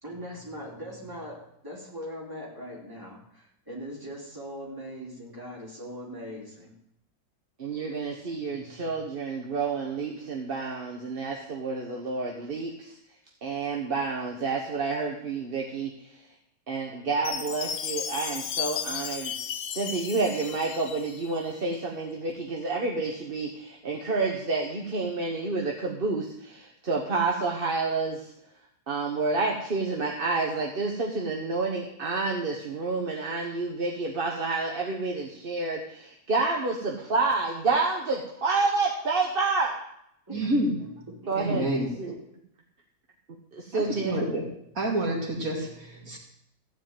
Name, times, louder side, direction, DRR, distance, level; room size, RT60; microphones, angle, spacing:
voice 1, 0.0-6.8 40.3-40.6 41.2-42.2, equal, 15° right, -4 dB, 3.7 m, -40 dB
voice 2, 7.6-12.9 13.4-15.9 16.7-19.3 19.7-28.2 28.9-39.7 41.3-41.7 42.0-42.1 43.5-44.2, right 3 dB, 40° right, 0 dB, 1.3 m, -29 dB
Chime, 17.2-21.4, left 8 dB, 80° left, 1.4 m, -34 dB
voice 3, 40.3-40.7 41.3-41.9 43.7-44.5 44.8-46.2, right 1 dB, 65° right, -1 dB, 2.8 m, -28 dB
15.0 x 5.1 x 9.1 m, 0.75 s
omnidirectional pair, 1.6 m